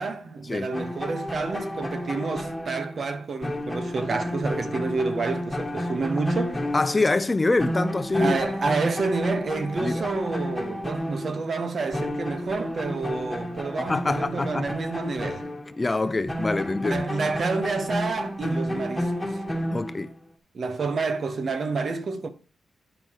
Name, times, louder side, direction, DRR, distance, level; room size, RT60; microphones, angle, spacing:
voice 1, 0.0-6.7 8.2-15.5 16.8-19.4 20.5-22.3, right 4 dB, 55° right, 1.3 m, -29 dB
sound 1, 0.7-7.3 7.6-15.8 16.3-20.2, equal, 5° left, 1.9 m, -31 dB
voice 2, 6.7-8.4 9.8-10.1 13.8-14.8 15.8-17.0 19.7-20.1, left 2 dB, 25° left, 0.5 m, -25 dB
9.3 x 5.4 x 4.7 m
cardioid pair, 80°, 0 cm